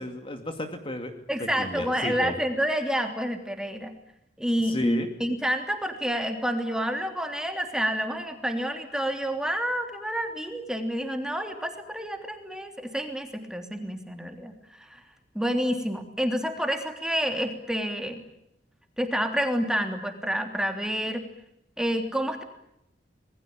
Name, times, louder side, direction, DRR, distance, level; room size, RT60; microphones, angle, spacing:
voice 1, 0.0-1.1 1.4-2.4 4.6-5.1, left 1 dB, 30° left, 6 dB, 2.5 m, -33 dB
voice 2, 1.3-3.9 4.4-14.5 14.9-15.0 15.3-18.2 19.0-21.3 21.8-22.4, equal, 5° right, 5 dB, 3.2 m, -29 dB
27.0 x 21.0 x 8.8 m, 0.78 s
head